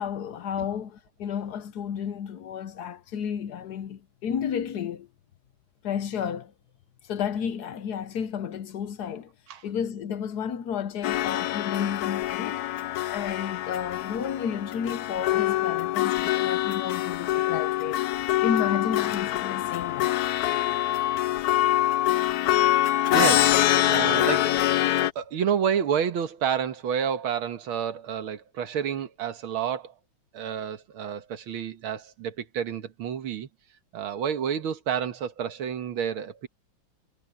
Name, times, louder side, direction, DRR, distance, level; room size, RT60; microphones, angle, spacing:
voice 1, 0.0-5.1 5.8-6.5 7.0-9.3 9.6-12.7 13.1-18.0 18.4-20.2, left 8 dB, 60° left, 1.2 m, -32 dB
sound 1, 11.0-25.1, left 14 dB, 75° left, 0.8 m, -25 dB
voice 2, 23.1-24.5 25.2-29.9 30.3-33.5 33.9-36.5, right 8 dB, 85° right, 2.2 m, -29 dB
omnidirectional pair, 2.2 m